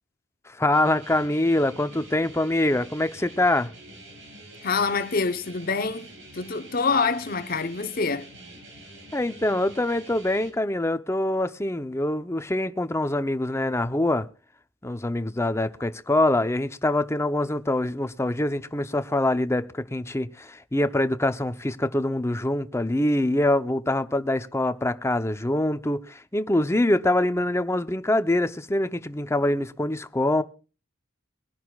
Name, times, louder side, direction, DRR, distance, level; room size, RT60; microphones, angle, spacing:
voice 1, 0.5-3.7 9.1-14.3 14.8-30.4, left 1 dB, 15° left, 0.7 m, -24 dB
sound 1, 0.7-10.5, right 1 dB, 65° right, 5.7 m, -46 dB
voice 2, 4.6-6.1 6.3-8.3, left 4 dB, 45° left, 0.9 m, -26 dB
23.0 x 11.0 x 2.4 m
head